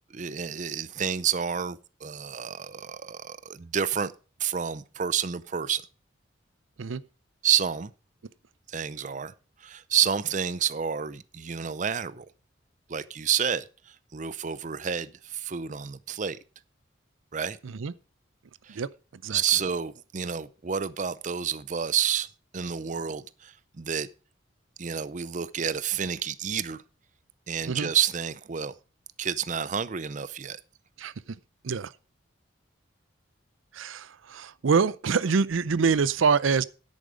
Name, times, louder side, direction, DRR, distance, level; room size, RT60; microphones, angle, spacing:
voice 1, 0.1-4.1 4.4-5.8 7.4-7.9 8.7-9.3 9.6-12.3 12.9-16.4 17.3-17.6 18.6-18.8 19.3-22.3 22.5-24.1 24.8-26.8 27.5-28.7 29.2-30.6, right 8 dB, 40° right, 0.5 m, -29 dB
voice 2, 33.7-36.6, right 5 dB, 85° right, 0.5 m, -25 dB
10.5 x 8.9 x 4.9 m
head